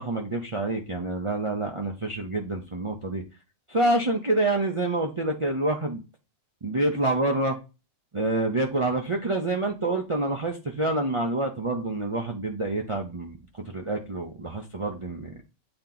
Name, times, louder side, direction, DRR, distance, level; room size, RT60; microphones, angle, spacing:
voice 1, 0.0-3.2 3.7-6.0 6.6-7.6 8.1-13.4 13.7-15.4, right 2 dB, 35° right, 0.6 m, -27 dB
8.6 x 2.9 x 3.8 m
omnidirectional pair, 1.3 m